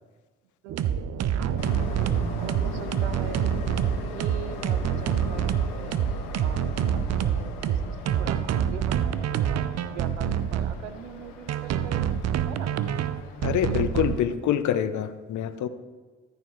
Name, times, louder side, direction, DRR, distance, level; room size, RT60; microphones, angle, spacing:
voice 1, 0.6-3.5 4.0-6.0 6.4-9.6 9.9-12.1 12.5-12.7, right 9 dB, 85° right, 11 dB, 0.7 m, -42 dB
sound 1, 0.7-10.7 11.5-14.2, right 9 dB, 50° right, 0.7 m, -26 dB
Train, 1.6-14.2, left 1 dB, 75° left, 1.2 m, -39 dB
voice 2, 13.4-15.7, left 9 dB, 55° left, 12 dB, 0.8 m, -26 dB
13.5 x 6.8 x 3.2 m, 1.4 s
hypercardioid pair, 50°, 35 cm